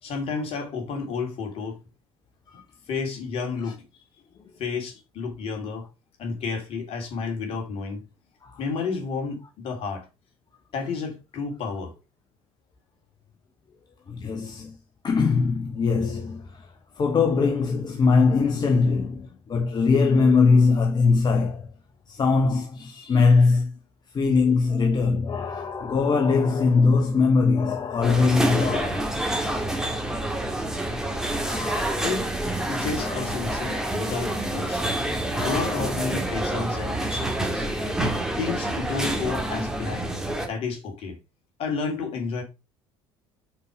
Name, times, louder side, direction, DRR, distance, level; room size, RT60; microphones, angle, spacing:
voice 1, 0.0-1.8 2.5-2.6 2.9-3.8 4.6-5.9 6.2-8.0 8.6-10.1 10.7-11.9 32.0-32.3 32.7-34.8 35.4-37.7 38.3-40.1 40.4-41.2 41.6-42.4, left 5 dB, 55° left, 3.0 m, -31 dB
voice 2, 14.1-14.8 15.0-16.7 17.0-21.7 22.1-23.7 24.1-29.7 31.4-32.1 33.0-33.4 35.3-35.9, left 4 dB, 35° left, 1.1 m, -22 dB
sound 1, 28.0-40.5, right 1 dB, 5° right, 2.0 m, -27 dB
6.0 x 4.7 x 4.8 m
hypercardioid pair, 75°, 12 cm